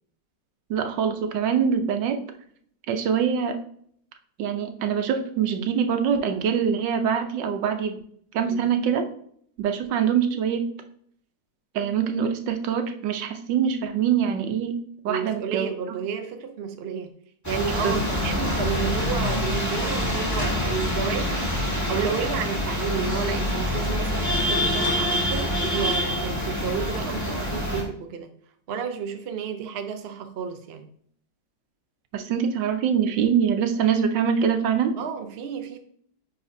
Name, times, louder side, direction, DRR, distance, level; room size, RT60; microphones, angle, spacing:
voice 1, 0.7-2.2 2.9-3.6 4.4-8.0 8.3-9.0 9.6-10.6 11.7-14.8 15.0-15.7 17.8-18.0 32.1-34.9, right 7 dB, 85° right, 1.4 m, -24 dB
voice 2, 15.1-17.2 17.5-28.4 28.7-30.9 35.0-35.8, right 7 dB, 55° right, 0.7 m, -31 dB
sound 1, 17.4-27.8, left 1 dB, 10° left, 1.6 m, -26 dB
9.9 x 4.1 x 2.6 m
omnidirectional pair, 1.9 m